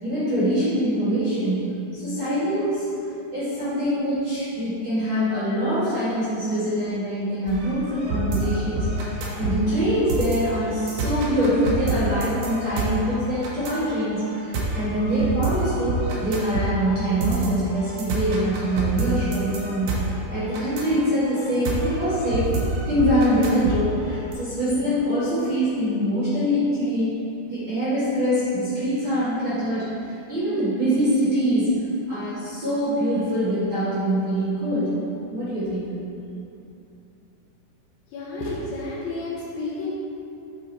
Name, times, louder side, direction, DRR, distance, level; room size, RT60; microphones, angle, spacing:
voice 1, 0.0-2.9 3.3-22.5 22.8-27.1 27.5-31.7 32.1-35.0 35.3-35.9, equal, 40° right, -13 dB, 2.0 m, -24 dB
sound 1, 7.5-24.3, right 2 dB, 85° right, 1.5 m, -28 dB
voice 2, 38.1-39.9, left 2 dB, 75° left, -5 dB, 2.5 m, -31 dB
8.7 x 5.3 x 4.2 m, 2.8 s
omnidirectional pair, 4.7 m